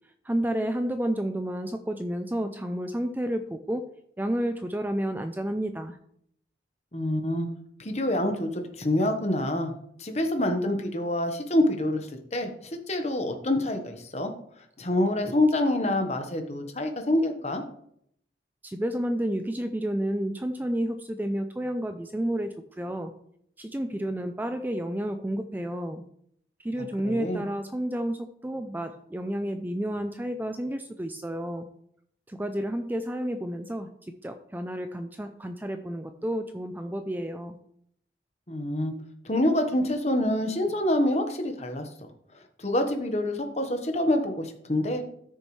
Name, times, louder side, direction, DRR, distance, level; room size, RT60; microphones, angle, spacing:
voice 1, 0.3-3.8 4.2-6.0 18.6-23.1 23.6-26.0 26.6-31.7 32.3-33.9 34.2-37.6, right 1 dB, 10° right, 8 dB, 0.4 m, -30 dB
voice 2, 6.9-7.5 7.8-9.7 10.0-12.5 12.9-14.3 14.8-17.6 27.0-27.4 38.5-38.9 39.2-41.9 42.6-45.0, left 1 dB, 35° left, 5 dB, 1.2 m, -26 dB
13.5 x 6.4 x 3.2 m, 0.70 s
head